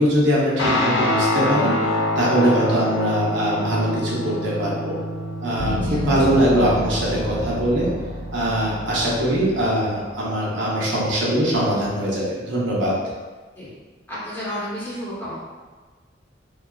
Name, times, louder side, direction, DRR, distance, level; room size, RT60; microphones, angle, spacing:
voice 1, 0.0-5.0 5.4-7.9 8.3-12.9, right 1 dB, 80° right, -6 dB, 0.7 m, -22 dB
Guitar, 0.6-9.4, left 1 dB, 80° left, 0.5 m, -26 dB
sound 1, 5.6-10.8, left 1 dB, 40° left, 0.7 m, -31 dB
voice 2, 14.1-15.4, equal, 10° left, -10 dB, 0.8 m, -31 dB
2.6 x 2.3 x 2.2 m, 1.4 s
head